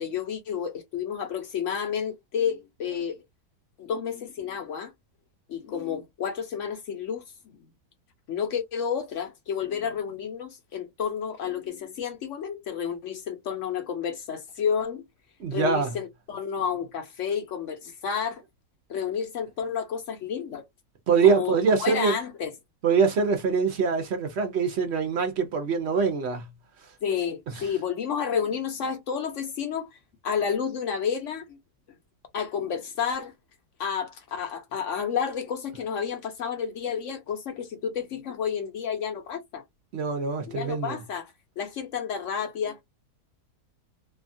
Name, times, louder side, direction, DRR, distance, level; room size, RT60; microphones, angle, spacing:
voice 1, 0.0-3.2 3.8-4.9 5.5-7.2 8.3-15.0 15.5-18.4 18.9-20.7 21.2-22.5 27.0-31.6 32.3-33.3 33.8-39.6 40.5-42.8, left 7 dB, 60° left, 0.8 m, -30 dB
voice 2, 15.4-15.9 21.1-22.1 22.8-26.5 39.9-41.0, right 5 dB, 60° right, 0.7 m, -24 dB
2.7 x 2.3 x 2.6 m
omnidirectional pair, 1.8 m